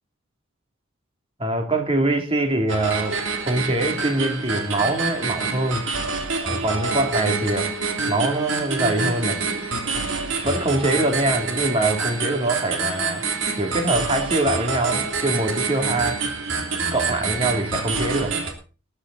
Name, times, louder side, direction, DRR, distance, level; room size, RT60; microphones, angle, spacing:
voice 1, 1.4-5.9 6.4-7.7 8.1-9.4 10.4-13.2 13.6-16.2 16.7-18.4, right 2 dB, 25° right, 3 dB, 2.9 m, -24 dB
sound 1, 2.7-18.5, right 4 dB, 65° right, 3.0 m, -26 dB
20.5 x 9.6 x 4.1 m, 0.36 s
head